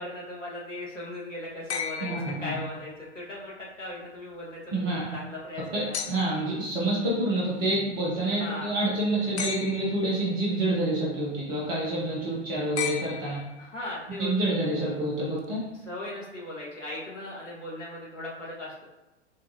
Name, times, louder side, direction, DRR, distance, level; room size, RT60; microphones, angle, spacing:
voice 1, 0.0-6.0 8.4-8.7 13.6-14.5 15.8-18.8, left 1 dB, 85° left, -6 dB, 1.4 m, -38 dB
sound 1, 1.7-3.1 5.9-6.6 9.4-10.2 12.8-13.8 15.4-15.5, left 7 dB, 65° left, 0.5 m, -35 dB
voice 2, 2.0-2.5 4.7-5.0 5.7-13.4 14.2-15.7, right 1 dB, 15° right, -4 dB, 0.3 m, -27 dB
4.6 x 2.2 x 2.6 m, 1.0 s
figure-of-eight pair, 105°, 36 cm